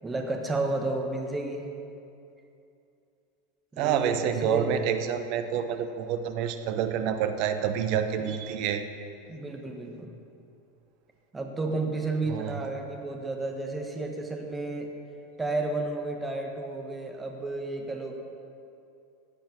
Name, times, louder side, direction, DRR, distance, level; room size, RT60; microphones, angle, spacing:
voice 1, 0.0-1.7 3.7-4.7 8.2-8.3 9.3-10.2 11.3-14.9 15.4-18.2, right 2 dB, 15° right, 2 dB, 1.6 m, -32 dB
voice 2, 3.8-8.8 12.3-12.6, right 8 dB, 50° right, 9 dB, 1.0 m, -28 dB
15.0 x 8.9 x 6.2 m, 2.6 s
figure-of-eight pair, 80°, 0 cm